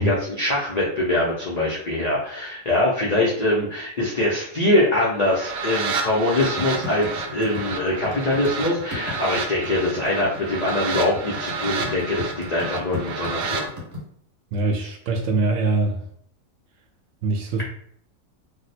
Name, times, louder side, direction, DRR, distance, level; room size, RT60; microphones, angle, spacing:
voice 1, 0.0-13.6, left 1 dB, 70° left, -5 dB, 0.4 m, -23 dB
sound 1, 5.2-13.7, right 4 dB, 90° right, 1.1 m, -30 dB
sound 2, 6.4-14.0, left 3 dB, 35° right, 1.2 m, -35 dB
voice 2, 14.5-16.0 17.2-17.6, right 3 dB, 70° right, 1 dB, 0.8 m, -23 dB
2.8 x 2.0 x 4.0 m, 0.64 s
omnidirectional pair, 1.6 m